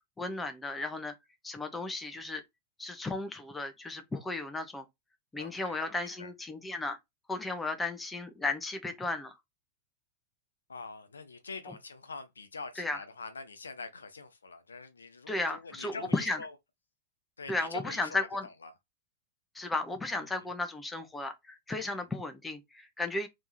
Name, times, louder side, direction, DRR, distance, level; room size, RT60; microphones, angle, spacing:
voice 1, 0.2-1.1 1.4-2.4 2.8-4.8 5.3-7.0 7.3-9.3 12.8-13.0 15.3-16.4 17.5-18.5 19.5-23.3, left 2 dB, 10° left, 1.1 m, -34 dB
voice 2, 5.4-5.8 6.2-6.3 10.7-16.5 17.4-18.7 20.3-20.4 21.8-22.0, left 4 dB, 75° left, 0.8 m, -45 dB
3.5 x 3.3 x 4.1 m
figure-of-eight pair, 90°, 0 cm